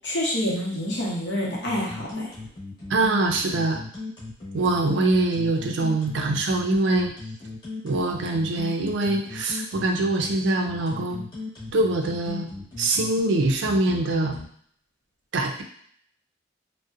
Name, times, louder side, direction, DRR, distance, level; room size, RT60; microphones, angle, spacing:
voice 1, 0.0-2.3, left 1 dB, 65° left, -3 dB, 0.8 m, -27 dB
sound 1, 1.6-14.5, left 2 dB, 25° left, 0.9 m, -36 dB
voice 2, 2.9-3.8 4.5-7.1 7.8-11.2 11.7-12.5 12.8-14.4 15.3-15.6, right 2 dB, 70° right, 3 dB, 0.4 m, -23 dB
2.6 x 2.1 x 2.4 m, 0.62 s
head